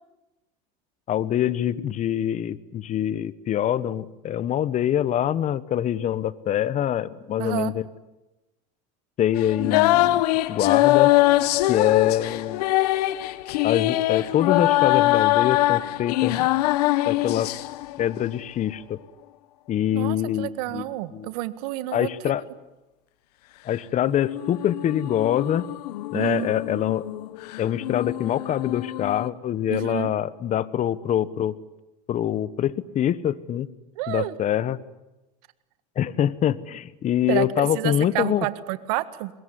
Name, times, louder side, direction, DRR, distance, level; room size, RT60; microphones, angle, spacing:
voice 1, 1.1-7.8 9.2-10.2 10.5-11.1 11.7-12.6 13.6-16.5 17.1-17.5 18.0-19.0 19.7-20.8 21.1-21.3 21.9-22.4 23.6-25.7 26.1-27.1 27.6-31.6 32.1-33.7 34.1-34.8 35.9-38.5, left 11 dB, 40° left, 18 dB, 1.2 m, -24 dB
voice 2, 7.4-7.7 19.9-22.1 26.1-26.5 29.7-30.1 34.0-34.4 37.3-39.3, right 16 dB, 75° right, 14 dB, 1.7 m, -29 dB
sound 1, 9.4-18.2 24.0-29.3, left 17 dB, 85° left, 1.3 m, -23 dB
24.5 x 21.5 x 9.9 m, 1.0 s
supercardioid pair, 115°, 20 cm